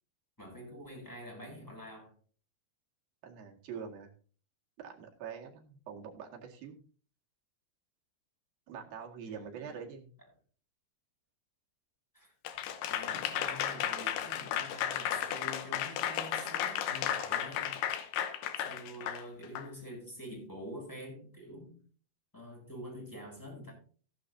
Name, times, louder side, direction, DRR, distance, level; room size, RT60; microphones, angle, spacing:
voice 1, 0.4-2.1 9.3-9.8 12.1-12.3 12.9-17.9 18.6-21.7 22.3-23.7, equal, 5° left, -1 dB, 7.5 m, -46 dB
voice 2, 3.2-4.1 4.8-6.8 8.7-10.1, right 7 dB, 65° right, 1 dB, 3.7 m, -45 dB
Applause / Crowd, 12.4-19.7, left 10 dB, 80° left, 3.0 m, -34 dB
15.5 x 11.5 x 2.8 m, 0.40 s
omnidirectional pair, 4.5 m